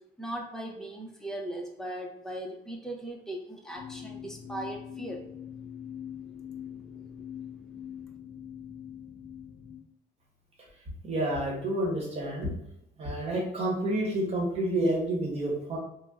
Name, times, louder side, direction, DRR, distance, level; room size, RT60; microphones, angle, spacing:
voice 1, 0.2-5.2, right 1 dB, 5° left, 0 dB, 0.6 m, -38 dB
sound 1, 3.7-9.8, left 9 dB, 40° left, 0.7 m, -43 dB
voice 2, 11.0-12.5 13.0-15.8, right 1 dB, 40° right, -2 dB, 1.1 m, -29 dB
2.6 x 2.1 x 3.4 m, 0.79 s
cardioid pair, 110°, 17 cm